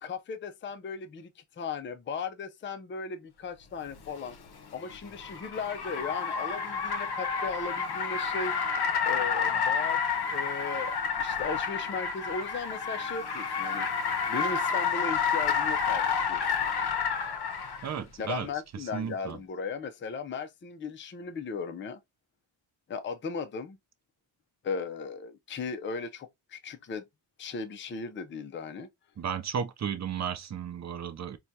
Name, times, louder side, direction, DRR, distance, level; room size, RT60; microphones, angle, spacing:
voice 1, 0.0-4.4 4.7-8.5 9.0-13.9 14.3-16.6 18.2-22.0 22.9-23.8 24.6-27.0 27.4-28.9, left 5 dB, 25° left, 0.4 m, -37 dB
Car, 4.0-17.9, left 6 dB, 50° left, 0.7 m, -30 dB
voice 2, 17.8-18.5 18.7-19.4 29.2-31.4, right 7 dB, 35° right, 0.4 m, -34 dB
4.4 x 2.3 x 2.6 m
wide cardioid pair, 130°, 49 cm